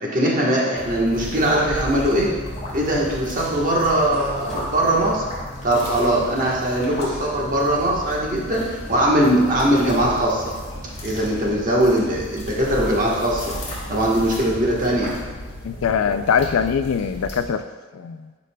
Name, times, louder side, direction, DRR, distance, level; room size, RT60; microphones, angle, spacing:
voice 1, 0.0-2.3 2.7-5.2 5.6-10.5 11.0-13.6 13.9-15.2, right 1 dB, 40° right, -3 dB, 1.2 m, -20 dB
sound 1, 0.7-17.4, left 1 dB, 35° left, 1.8 m, -34 dB
sound 2, 4.1-4.9 7.0-7.6 9.1-9.2, equal, ahead, 1.3 m, -37 dB
voice 2, 15.6-17.6 17.9-18.3, left 7 dB, 90° left, 10 dB, 0.4 m, -22 dB
9.6 x 5.2 x 2.2 m, 1.4 s
head